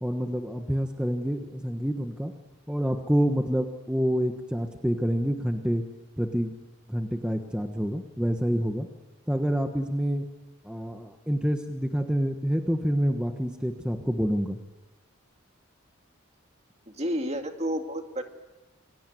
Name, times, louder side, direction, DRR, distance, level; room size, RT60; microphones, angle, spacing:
voice 1, 0.0-2.3 2.7-5.8 6.2-6.5 6.9-8.9 9.3-10.2 10.6-14.6, equal, 5° right, 5 dB, 1.2 m, -27 dB
voice 2, 16.9-18.2, equal, 30° right, 5 dB, 2.2 m, -30 dB
28.0 x 22.5 x 9.3 m, 1.1 s
head